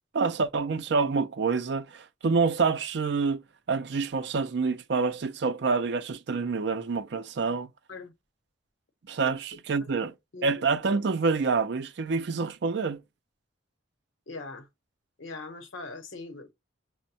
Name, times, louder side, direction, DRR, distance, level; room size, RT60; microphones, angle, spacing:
voice 1, 0.1-3.4 3.7-7.7 9.1-10.1 10.4-13.0, right 4 dB, 60° right, 0.5 m, -27 dB
voice 2, 10.3-10.6 14.3-14.7 15.2-16.5, left 3 dB, 85° left, 0.8 m, -41 dB
6.0 x 2.1 x 2.7 m
head